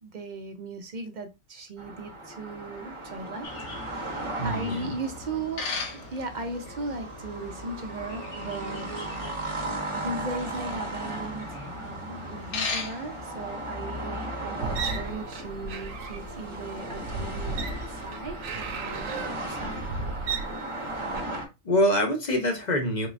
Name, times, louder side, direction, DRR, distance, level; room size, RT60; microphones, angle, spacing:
voice 1, 0.0-5.6 5.9-17.7 18.0-19.9, right 2 dB, 55° right, 0.5 m, -37 dB
sound 1, 1.8-21.4, right 1 dB, 30° right, 0.8 m, -36 dB
sound 2, 3.4-13.7, left 4 dB, 85° left, 1.2 m, -39 dB
voice 2, 4.4-4.9 21.6-23.1, equal, 40° left, 0.8 m, -25 dB
sound 3, 14.6-21.2, right 4 dB, 85° right, 1.0 m, -34 dB
3.8 x 3.1 x 2.4 m
omnidirectional pair, 1.3 m